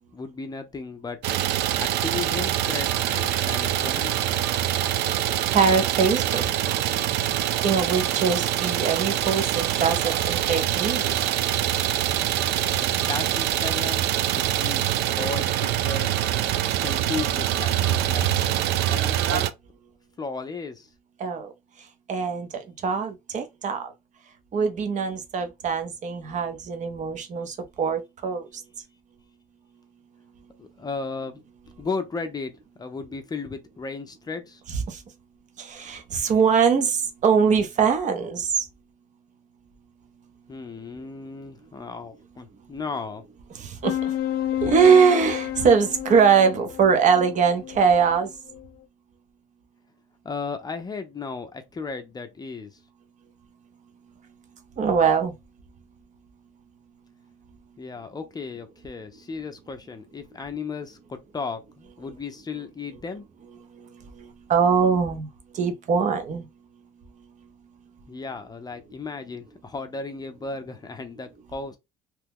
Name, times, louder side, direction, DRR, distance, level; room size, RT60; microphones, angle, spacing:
voice 1, 0.1-1.2 1.8-4.3 12.5-14.0 14.3-14.9 15.2-16.1 16.7-18.3 18.9-19.4 20.2-20.9 30.6-31.4 31.8-32.5 32.8-34.6 40.5-43.2 50.2-52.8 57.8-63.3 68.1-71.8, left 4 dB, 25° left, 0.5 m, -35 dB
Idling, 1.2-19.5, right 12 dB, 80° right, 0.4 m, -24 dB
voice 2, 5.5-6.4 7.6-11.1 21.2-21.5 22.1-23.9 24.5-28.5 34.9-35.0 35.6-38.5 43.6-44.1 44.6-48.3 54.8-55.3 64.2-65.3 65.5-66.4, right 6 dB, 45° right, 0.8 m, -22 dB
sound 1, 43.8-48.7, left 11 dB, 65° left, 0.6 m, -31 dB
3.0 x 2.2 x 3.5 m
cardioid pair, 110°, 17 cm